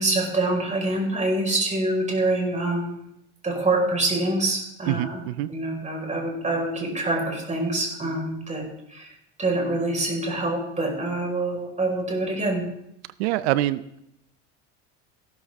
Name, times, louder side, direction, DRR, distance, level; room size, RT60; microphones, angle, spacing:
voice 1, 0.0-3.0 3.4-5.2 5.5-8.6 8.9-9.1 9.4-12.6, right 2 dB, 20° right, 1 dB, 5.1 m, -25 dB
voice 2, 4.9-5.5 13.2-14.0, right 15 dB, 85° right, 16 dB, 0.6 m, -25 dB
15.0 x 13.0 x 3.7 m, 0.78 s
supercardioid pair, 95°, 31 cm